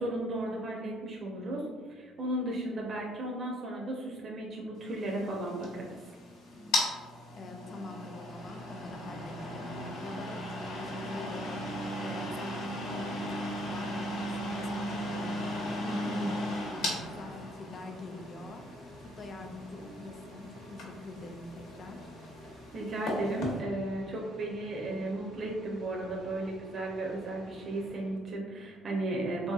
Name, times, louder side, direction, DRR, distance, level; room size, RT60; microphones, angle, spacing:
voice 1, 0.0-6.1 15.8-16.2 22.7-29.5, right 1 dB, 40° right, -2 dB, 0.5 m, -35 dB
sound 1, 4.9-23.6, left 1 dB, 85° left, 0.8 m, -37 dB
voice 2, 7.3-16.4 16.8-18.6 19.0-22.1, left 3 dB, 35° left, 4 dB, 0.4 m, -45 dB
sound 2, 8.3-28.2, equal, 85° right, 1.1 m, -51 dB
3.3 x 2.7 x 2.3 m, 1.4 s
cardioid pair, 125°, 0 cm